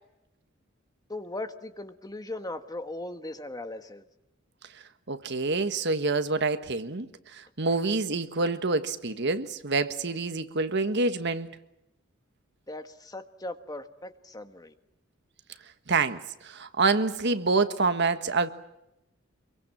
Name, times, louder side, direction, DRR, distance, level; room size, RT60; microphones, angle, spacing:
voice 1, 1.1-4.0 7.7-7.8 12.7-14.7, left 2 dB, 20° left, 1.4 m, -38 dB
voice 2, 5.1-7.1 7.3-11.5 15.9-18.5, right 3 dB, 60° right, 1.5 m, -27 dB
26.0 x 23.5 x 7.4 m
head